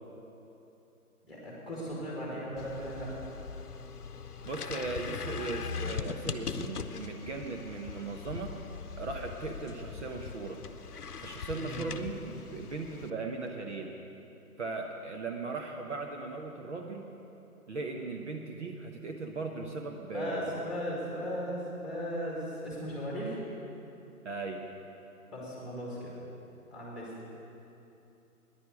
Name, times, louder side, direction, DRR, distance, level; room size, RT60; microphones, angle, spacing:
voice 1, 1.3-3.1 11.5-11.8 20.1-23.4 25.3-26.1 26.7-27.1, equal, ahead, -5 dB, 2.1 m, -37 dB
sound 1, 2.6-13.1, left 6 dB, 80° left, 0.8 m, -40 dB
voice 2, 4.4-8.6 9.0-10.6 11.2-13.9 14.6-17.1 17.7-20.5 24.2-24.6, right 3 dB, 50° right, 2 dB, 1.0 m, -38 dB
10.0 x 9.9 x 8.2 m, 2.9 s
figure-of-eight pair, 145°, 45 cm